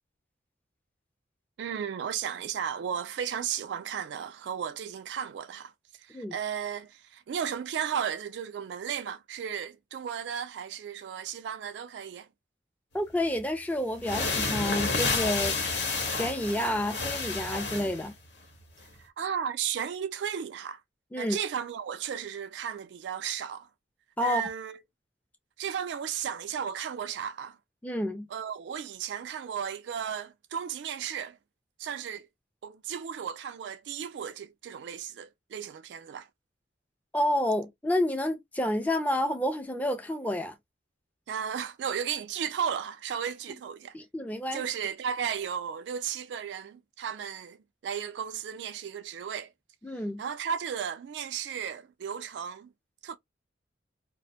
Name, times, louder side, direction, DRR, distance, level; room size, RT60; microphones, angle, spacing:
voice 1, 1.6-5.7 6.0-12.3 19.0-20.8 21.2-23.7 24.2-24.8 25.6-27.6 28.3-31.4 31.8-32.3 32.6-36.3 41.3-43.9 44.5-47.6 47.8-49.5 50.2-52.7 53.0-53.2, right 8 dB, 70° right, 0.3 m, -34 dB
voice 2, 12.9-15.5 16.1-18.1 21.1-21.4 24.2-24.4 27.8-28.3 37.1-40.5 43.9-44.6 49.8-50.2, left 1 dB, 10° left, 0.4 m, -29 dB
sound 1, 13.4-13.5 13.9-18.1, left 4 dB, 75° left, 0.9 m, -30 dB
2.5 x 2.1 x 2.7 m
head